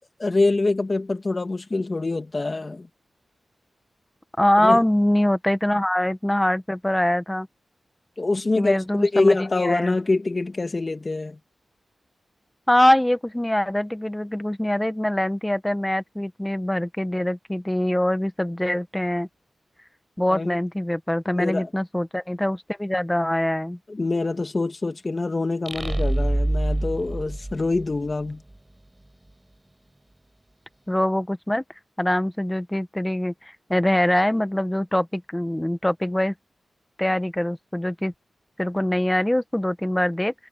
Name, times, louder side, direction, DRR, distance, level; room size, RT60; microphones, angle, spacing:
voice 1, 0.2-2.9 4.6-4.8 8.2-11.4 20.3-20.6 21.3-21.7 23.9-28.4, left 3 dB, 35° left, 2.0 m, -25 dB
voice 2, 4.4-7.5 8.6-10.0 12.7-19.3 20.2-23.8 30.9-31.6 32.0-36.3 37.0-38.1 38.6-40.3, left 1 dB, 10° left, 1.1 m, -23 dB
sound 1, 25.7-28.3, right 1 dB, 15° right, 6.0 m, -25 dB
wide cardioid pair, 100°, 0 cm